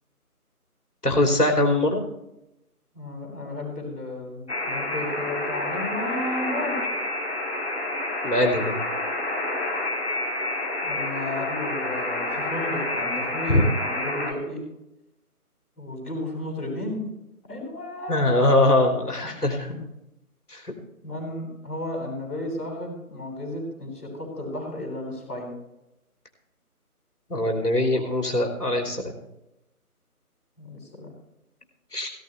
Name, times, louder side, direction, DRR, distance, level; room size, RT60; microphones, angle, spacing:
voice 1, 1.0-2.0 8.2-8.7 13.5-13.6 18.1-19.7 20.5-20.6 27.3-29.1 31.9-32.1, left 1 dB, 90° left, 2 dB, 3.2 m, -22 dB
voice 2, 2.9-6.8 10.8-14.6 15.7-17.1 17.4-18.5 21.0-25.5 30.6-31.1, left 1 dB, 5° left, -15 dB, 4.2 m, -33 dB
Alarm, 4.5-14.3, left 2 dB, 45° left, 2.7 m, -29 dB
16.5 x 14.0 x 3.3 m, 0.89 s
figure-of-eight pair, 170°, 45 cm